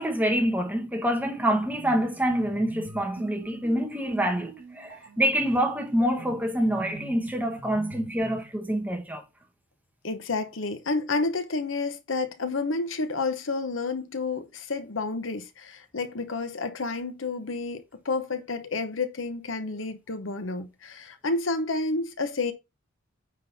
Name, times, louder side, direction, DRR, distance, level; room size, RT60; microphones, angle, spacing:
voice 1, 0.0-9.2, equal, 10° right, 1.4 m, -26 dB
sound 1, 1.6-8.5, right 2 dB, 65° right, 1.9 m, -44 dB
voice 2, 10.0-22.5, left 3 dB, 70° left, 1.0 m, -30 dB
9.3 x 3.8 x 4.1 m
head